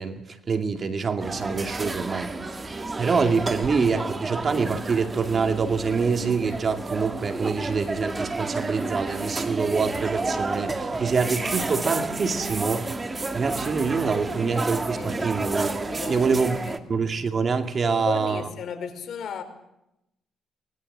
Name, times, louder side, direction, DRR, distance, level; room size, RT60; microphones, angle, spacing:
voice 1, 0.0-2.3 3.0-12.9 13.3-16.6 16.9-18.4, right 5 dB, 40° right, 2.5 m, -25 dB
sound 1, 1.2-16.8, right 3 dB, 25° right, 2.3 m, -30 dB
voice 2, 15.9-16.8 17.8-19.4, left 7 dB, 65° left, 4.9 m, -35 dB
25.5 x 20.5 x 7.6 m
cardioid pair, 90°, 0 cm